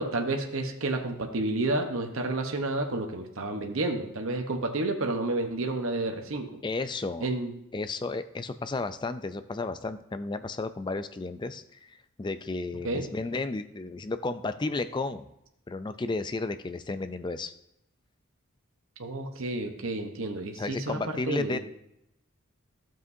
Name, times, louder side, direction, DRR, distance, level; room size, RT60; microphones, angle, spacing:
voice 1, 0.0-6.6 7.2-7.5 12.8-13.0 19.0-21.0 21.3-21.6, right 2 dB, 70° right, 4 dB, 1.0 m, -30 dB
voice 2, 6.6-7.3 7.7-11.9 12.2-15.3 15.7-17.5 20.5-21.6, left 3 dB, 20° left, 11 dB, 0.4 m, -33 dB
12.0 x 7.5 x 2.7 m, 0.82 s
head